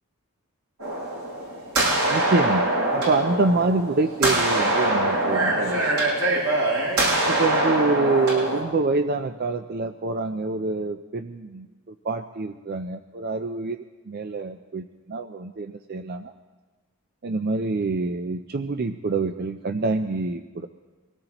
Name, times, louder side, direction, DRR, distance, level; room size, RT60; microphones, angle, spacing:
sound 1, 0.8-8.6, right 1 dB, 85° right, 7.0 m, -23 dB
voice 1, 2.1-6.1 7.3-16.3 17.2-20.7, right 3 dB, 45° right, 8 dB, 0.4 m, -26 dB
24.5 x 17.5 x 3.0 m, 1.2 s
head